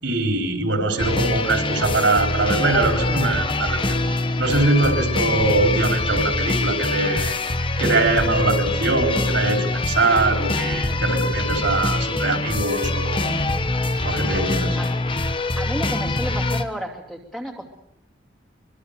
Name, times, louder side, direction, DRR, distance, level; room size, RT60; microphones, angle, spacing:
voice 1, 0.0-7.4 7.8-13.4 14.0-14.8, right 2 dB, 70° right, 3 dB, 4.2 m, -22 dB
sound 1, 1.0-16.6, left 2 dB, 25° left, 1.1 m, -24 dB
voice 2, 15.6-17.7, equal, ahead, 1 dB, 2.8 m, -31 dB
24.5 x 24.5 x 6.8 m, 0.78 s
head